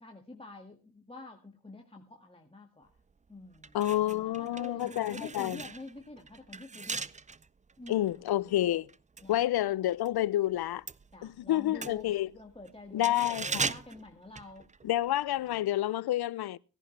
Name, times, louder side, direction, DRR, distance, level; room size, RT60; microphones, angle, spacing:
voice 1, 0.0-2.9 3.3-7.1 7.8-8.5 9.2-9.4 11.1-12.1 12.3-14.7 15.4-15.6, left 2 dB, 15° left, 2.0 m, -48 dB
sound 1, 3.0-3.1 3.5-10.2 10.4-15.1 15.4-15.5, right 4 dB, 20° right, 0.5 m, -40 dB
voice 2, 3.7-5.6 7.9-8.9 9.3-10.8 11.2-12.3 12.9-13.6 14.8-16.6, left 13 dB, 70° left, 0.6 m, -29 dB
17.0 x 11.0 x 3.3 m
cardioid pair, 55°, 40 cm